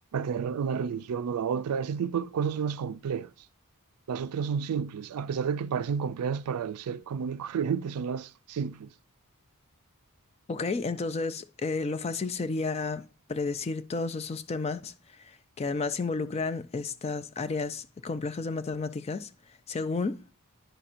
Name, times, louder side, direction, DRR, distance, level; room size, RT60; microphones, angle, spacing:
voice 1, 0.1-3.3 4.1-8.9, right 6 dB, 85° right, 0.4 m, -31 dB
voice 2, 10.5-13.0 13.3-14.9 15.6-19.3 19.7-20.2, left 3 dB, 30° left, 0.4 m, -31 dB
10.0 x 5.7 x 2.5 m
head